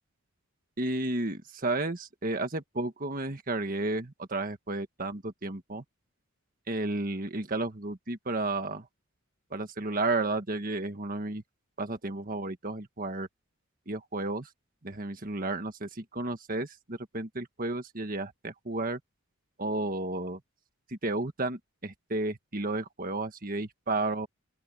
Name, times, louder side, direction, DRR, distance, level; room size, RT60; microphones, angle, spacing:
voice 1, 0.8-5.8 6.7-8.9 9.5-11.4 11.8-13.3 13.9-14.5 14.8-19.0 19.6-20.4 20.9-24.3, right 2 dB, 40° right, 1.6 m, -32 dB
open air
head